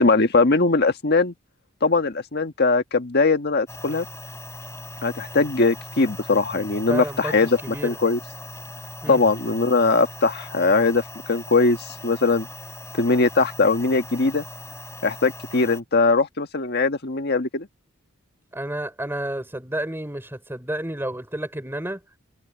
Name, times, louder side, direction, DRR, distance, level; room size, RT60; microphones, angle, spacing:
voice 1, 0.0-1.3 1.8-4.0 5.0-8.2 9.1-12.5 12.9-14.4 15.0-17.7, left 3 dB, 50° left, 1.6 m, -20 dB
sound 1, 3.7-15.8, left 2 dB, 15° left, 3.7 m, -39 dB
voice 2, 6.9-8.0 9.0-9.2 18.5-22.0, right 1 dB, 10° right, 3.6 m, -30 dB
head